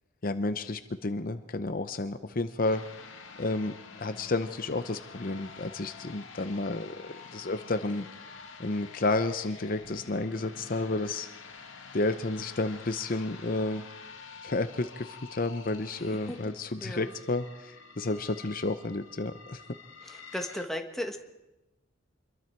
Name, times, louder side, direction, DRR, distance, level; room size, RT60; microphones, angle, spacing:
voice 1, 0.2-2.8 3.4-3.7 4.0-11.3 11.9-13.8 14.4-19.6, left 2 dB, 45° left, 10 dB, 0.8 m, -31 dB
sound 1, 2.6-20.6, left 5 dB, 75° left, 2.2 m, -48 dB
voice 2, 20.0-21.2, left 1 dB, ahead, 4 dB, 1.5 m, -35 dB
26.5 x 22.5 x 4.6 m, 1.0 s
head